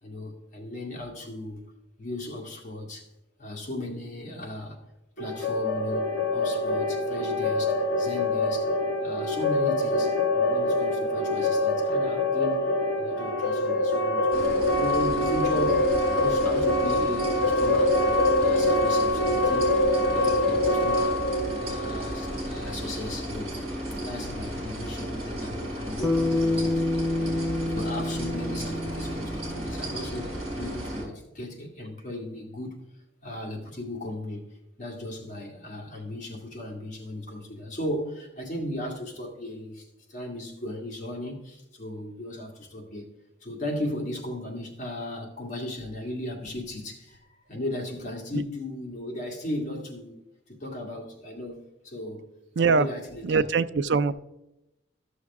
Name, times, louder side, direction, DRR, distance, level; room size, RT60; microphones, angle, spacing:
voice 1, 0.0-1.6 2.0-3.1 3.4-4.8 5.2-12.7 13.0-17.9 18.4-19.7 20.1-23.6 23.9-26.8 27.2-30.3 30.6-32.8 33.2-43.1 43.4-50.2 50.5-52.3 52.6-53.4, left 1 dB, 40° left, 2.0 m, -36 dB
sound 1, 5.2-22.9, left 1 dB, 80° left, 1.8 m, -25 dB
sound 2, 14.3-31.0, right 1 dB, 35° right, 3.2 m, -34 dB
Bass guitar, 26.0-30.5, left 1 dB, 10° right, 0.7 m, -28 dB
voice 2, 52.6-52.9 53.2-54.1, right 4 dB, 65° right, 0.4 m, -22 dB
13.0 x 6.4 x 3.6 m
head